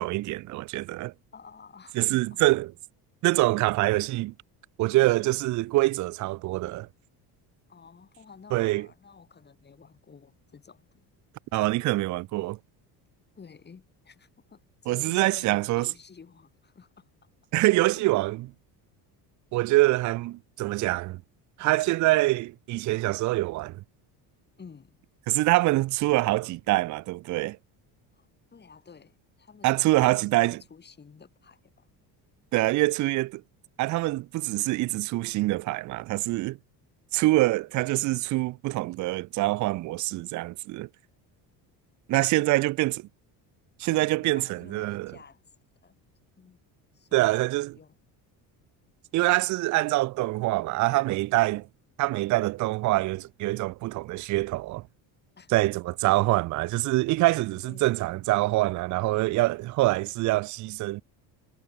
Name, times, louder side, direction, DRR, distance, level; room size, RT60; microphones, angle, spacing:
voice 1, 0.0-1.1 2.0-2.7 3.2-4.3 4.8-6.9 8.5-8.9 11.5-12.6 14.9-15.9 17.5-18.5 19.5-21.2 21.6-23.8 25.3-27.6 29.6-30.6 32.5-33.4 33.8-36.6 37.1-40.9 42.1-43.0 43.8-45.2 47.1-47.8 49.1-51.7 52.0-54.8 55.5-61.0, right 19 dB, 45° right, 0.4 m, -25 dB
voice 2, 1.3-2.4 7.7-11.1 13.4-17.1 17.6-17.8 24.6-25.0 28.1-31.9 42.1-42.7 43.9-45.4 45.8-46.0 46.4-46.6 46.9-48.0 55.4-55.5 56.3-56.4 57.6-57.9, left 5 dB, 25° left, 7.4 m, -51 dB
cardioid pair, 145°, 41 cm